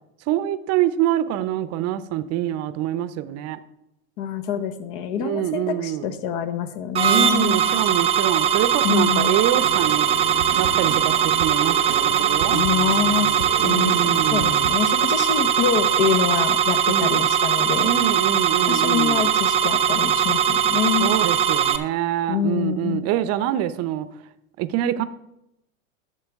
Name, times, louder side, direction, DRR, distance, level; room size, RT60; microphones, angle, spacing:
voice 1, 0.3-3.6 5.2-6.1 7.1-10.1 10.5-12.6 13.6-14.7 16.9-17.3 17.8-19.3 21.0-24.1 24.6-25.0, right 12 dB, 40° right, 13 dB, 0.7 m, -25 dB
voice 2, 4.2-7.6 8.8-9.4 12.5-17.9 18.7-21.1 22.3-23.0, left 8 dB, 50° left, 11 dB, 1.1 m, -26 dB
sound 1, 6.9-21.8, right 8 dB, 15° right, 0.3 m, -20 dB
sound 2, 9.6-14.7, right 10 dB, 80° right, 0.8 m, -34 dB
11.5 x 7.2 x 3.6 m, 0.86 s
hypercardioid pair, 115°, 39 cm